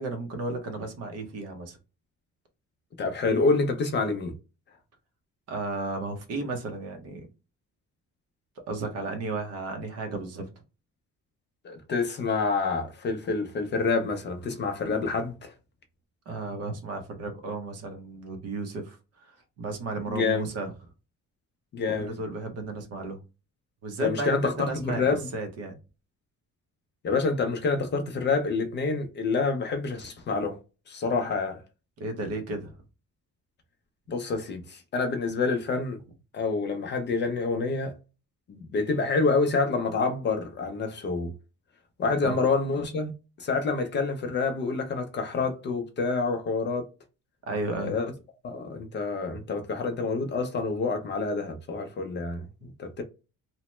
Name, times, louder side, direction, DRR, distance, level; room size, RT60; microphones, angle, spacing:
voice 1, 0.0-1.8 5.5-7.3 8.7-10.5 16.3-19.0 19.2-20.7 22.0-23.2 23.8-25.0 25.3-25.8 32.0-32.8 42.2-42.4 47.5-48.0, right 3 dB, 50° right, 0.7 m, -33 dB
voice 2, 3.0-4.3 11.6-15.5 20.1-20.4 21.7-22.1 24.0-25.3 27.0-30.6 30.9-31.6 34.1-36.0 36.3-37.9 38.5-41.3 42.0-43.1 43.4-46.9 47.8-48.1 48.4-53.0, left 4 dB, 35° left, 0.4 m, -27 dB
2.9 x 2.1 x 3.0 m
cardioid pair, 175°, 31 cm